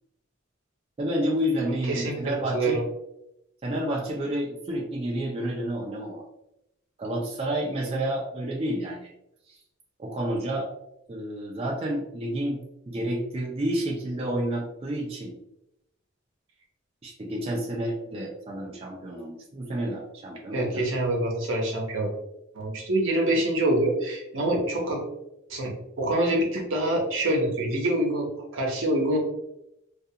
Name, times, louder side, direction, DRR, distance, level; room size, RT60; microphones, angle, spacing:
voice 1, 1.0-2.8 3.6-6.2 7.0-9.1 9.5-9.6 10.0-10.7 11.1-12.6 12.9-15.4 17.0-20.8, right 1 dB, 30° right, -2 dB, 0.4 m, -30 dB
voice 2, 1.9-2.8 20.5-22.1 22.5-25.0 25.5-25.7 26.0-28.3 28.5-29.2, right 1 dB, 80° right, -1 dB, 0.8 m, -25 dB
2.4 x 2.3 x 2.7 m, 0.84 s
head